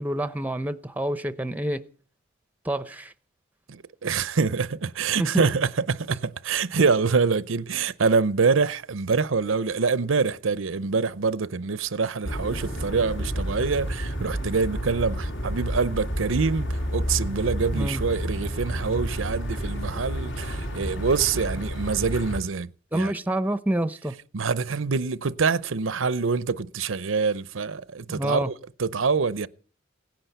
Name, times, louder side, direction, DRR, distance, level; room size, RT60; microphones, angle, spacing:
voice 1, 0.0-1.8 2.6-3.1 5.2-5.5 17.7-18.0 22.9-24.1 28.1-28.5, right 1 dB, 10° right, 0.7 m, -27 dB
voice 2, 3.7-23.1 24.3-28.5 28.8-29.5, right 5 dB, 75° right, 0.7 m, -25 dB
sound 1, 12.2-22.4, equal, 70° left, 2.8 m, -30 dB
17.5 x 10.0 x 8.0 m
head